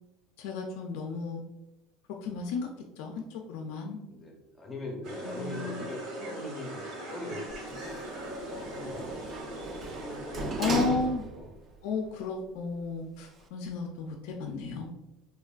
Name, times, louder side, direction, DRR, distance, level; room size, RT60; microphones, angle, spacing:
voice 1, 0.4-1.4 2.2-4.0 5.2-5.8 10.6-11.2 11.8-14.9, left 4 dB, 75° left, 2 dB, 0.3 m, -33 dB
voice 2, 4.1-10.6 11.2-11.5, left 1 dB, 10° left, 0 dB, 0.6 m, -42 dB
sound 1, 5.0-10.8, right 1 dB, 65° right, 0.9 m, -41 dB
Sliding door, 7.5-11.6 12.1-12.2, right 3 dB, 30° right, 0.3 m, -36 dB
3.2 x 2.3 x 2.2 m, 0.96 s
cardioid pair, 140°, 0 cm